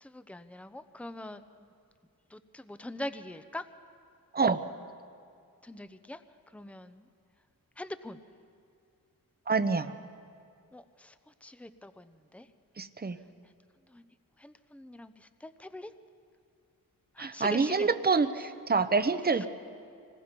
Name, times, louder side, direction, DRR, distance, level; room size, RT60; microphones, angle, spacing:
voice 1, 0.0-1.4 2.3-3.6 5.6-6.2 6.5-7.1 7.8-8.2 10.7-11.1 11.4-12.5 13.9-14.0 14.4-15.9 17.2-17.9 19.4-19.5, left 1 dB, 5° left, 11 dB, 0.8 m, -42 dB
voice 2, 9.5-9.9 12.8-13.2 17.2-19.5, right 4 dB, 25° right, 11 dB, 0.9 m, -27 dB
25.5 x 20.5 x 5.3 m, 2.3 s
cardioid pair, 60°, 37 cm